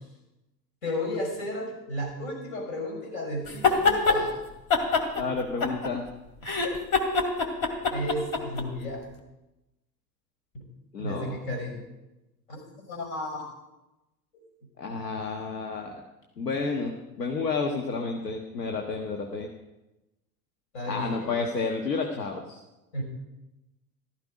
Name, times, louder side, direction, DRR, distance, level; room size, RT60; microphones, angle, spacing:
voice 1, 0.8-4.4 7.9-9.1 10.5-10.7 11.0-11.9 12.5-13.4 20.7-21.4 22.9-23.0, left 1 dB, 65° left, 3 dB, 6.2 m, -33 dB
sound 1, 3.5-4.2 4.7-6.1 6.4-8.6, left 4 dB, 40° left, 2.7 m, -24 dB
voice 2, 5.1-6.0 10.9-11.4 14.8-16.0 16.4-19.5 20.9-22.6, left 4 dB, 80° left, 3 dB, 1.6 m, -31 dB
15.0 x 13.5 x 5.1 m, 1.0 s
figure-of-eight pair, 75°, 47 cm